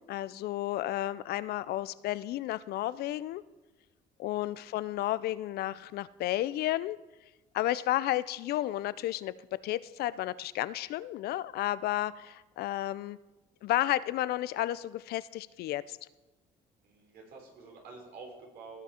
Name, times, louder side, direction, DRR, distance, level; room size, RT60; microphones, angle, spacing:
voice 1, 0.0-3.4 4.2-7.0 7.5-13.2 13.6-16.0, left 14 dB, 70° left, 17 dB, 0.4 m, -32 dB
voice 2, 4.3-4.8 16.8-18.8, right 4 dB, 70° right, 0 dB, 3.5 m, -49 dB
17.5 x 6.1 x 4.3 m, 1.1 s
cardioid pair, 110°, 17 cm